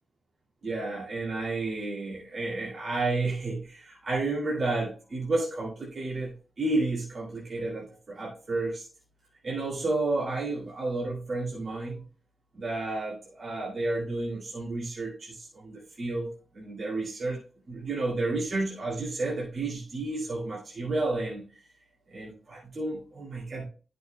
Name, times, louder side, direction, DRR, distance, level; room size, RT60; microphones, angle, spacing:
voice 1, 0.6-8.9 9.4-12.0 12.5-17.4 17.7-21.5 22.1-23.7, right 2 dB, 60° right, -6 dB, 2.3 m, -31 dB
11.0 x 6.5 x 2.2 m, 0.37 s
wide cardioid pair, 120°, 0 cm